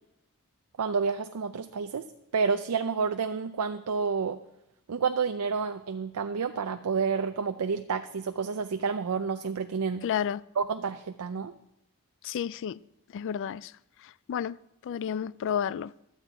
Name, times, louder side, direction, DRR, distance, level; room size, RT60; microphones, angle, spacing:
voice 1, 0.8-2.1 2.3-4.4 4.9-10.1 10.6-11.5, right 5 dB, 90° right, 0.5 m, -29 dB
voice 2, 10.0-10.4 12.2-12.8 13.1-13.7 14.3-14.6 14.8-15.9, left 8 dB, 55° left, 0.3 m, -31 dB
12.5 x 5.9 x 8.1 m
head